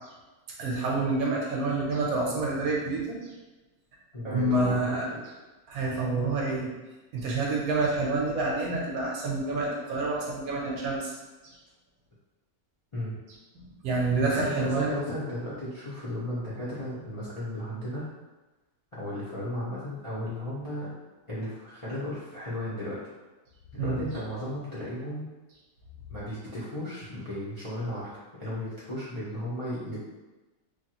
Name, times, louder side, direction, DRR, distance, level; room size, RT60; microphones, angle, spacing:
voice 1, 0.6-3.3 4.2-5.0 5.7-6.7 7.1-11.1 11.4-11.5 13.5-15.0 23.8-24.0, right 2 dB, 70° right, -2 dB, 1.0 m, -28 dB
voice 2, 4.1-5.2 12.9-13.2 14.2-18.1 18.9-20.9 21.3-23.0 23.7-25.3 26.1-28.1 28.4-30.0, left 1 dB, 40° left, -11 dB, 0.4 m, -35 dB
3.1 x 2.3 x 2.9 m, 1.1 s
omnidirectional pair, 1.7 m